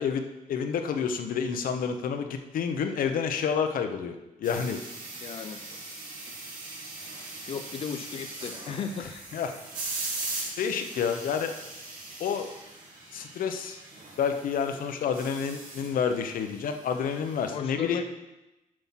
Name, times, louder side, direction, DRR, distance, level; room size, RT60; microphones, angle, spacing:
voice 1, 0.0-4.8 9.3-9.5 10.6-11.5 12.2-12.5 13.1-13.8 14.2-18.0, left 7 dB, 80° left, 7 dB, 0.8 m, -29 dB
sound 1, 4.4-17.5, right 2 dB, 75° right, 2.9 m, -40 dB
voice 2, 5.2-5.6 7.5-9.2 17.5-18.0, left 7 dB, 40° left, 7 dB, 0.5 m, -35 dB
7.7 x 5.9 x 5.7 m, 0.98 s
wide cardioid pair, 180°, 14 cm